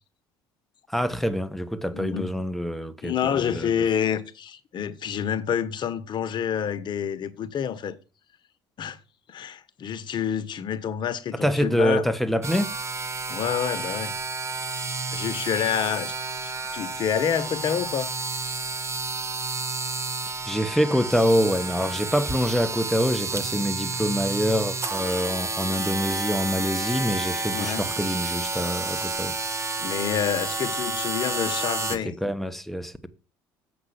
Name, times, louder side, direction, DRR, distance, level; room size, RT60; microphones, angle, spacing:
voice 1, 0.9-3.7 11.3-12.7 20.4-29.3 32.0-33.1, equal, ahead, 1.2 m, -25 dB
voice 2, 1.9-2.3 3.0-8.0 8.8-9.0 9.3-12.1 13.3-14.1 15.1-16.1 16.4-18.1 27.5-27.9 29.8-32.2, left 8 dB, 50° left, 1.3 m, -28 dB
sound 1, 12.4-32.0, right 3 dB, 30° right, 1.4 m, -30 dB
8.0 x 6.1 x 5.9 m
hypercardioid pair, 65°, 10 cm